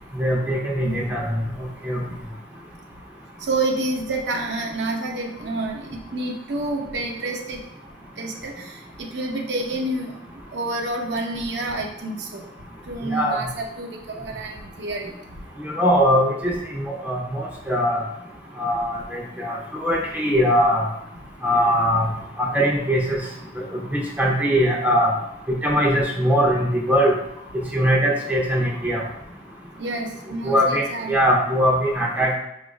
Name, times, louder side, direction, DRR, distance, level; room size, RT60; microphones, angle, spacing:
voice 1, 0.1-1.4 1.8-2.0 13.1-13.4 15.6-18.0 18.6-20.9 21.4-22.0 22.4-23.3 23.6-25.1 25.5-27.1 27.7-29.0 30.4-32.4, equal, 10° right, -3 dB, 0.5 m, -21 dB
voice 2, 3.4-7.6 8.2-8.7 9.0-10.1 10.5-12.4 12.9-15.1 29.8-31.3, right 2 dB, 70° right, 1 dB, 0.7 m, -28 dB
5.4 x 2.4 x 3.1 m, 0.83 s
head